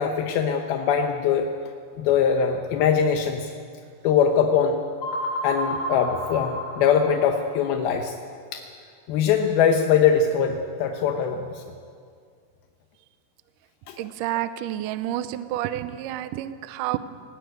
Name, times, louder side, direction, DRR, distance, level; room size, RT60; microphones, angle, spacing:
voice 1, 0.0-1.5 2.0-3.5 4.0-4.8 5.4-8.2 8.5-8.6 9.1-11.6 13.9-14.0, left 7 dB, 80° left, 4 dB, 2.9 m, -22 dB
sound 1, 5.0-7.6, equal, 45° left, 4.7 m, -31 dB
voice 2, 14.0-17.0, right 13 dB, 80° right, 12 dB, 2.0 m, -29 dB
19.5 x 17.0 x 9.5 m, 2.2 s
omnidirectional pair, 4.3 m